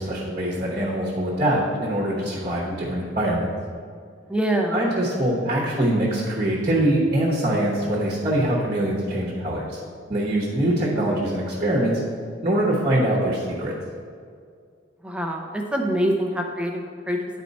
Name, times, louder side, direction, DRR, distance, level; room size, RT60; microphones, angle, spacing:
voice 1, 0.0-3.5 4.7-9.8 10.1-12.0 12.4-13.7, right 1 dB, 35° right, -4 dB, 1.1 m, -23 dB
voice 2, 4.3-4.8 10.9-11.2 15.0-17.4, right 1 dB, 5° right, 1 dB, 0.5 m, -25 dB
9.8 x 4.4 x 4.1 m, 2.2 s
head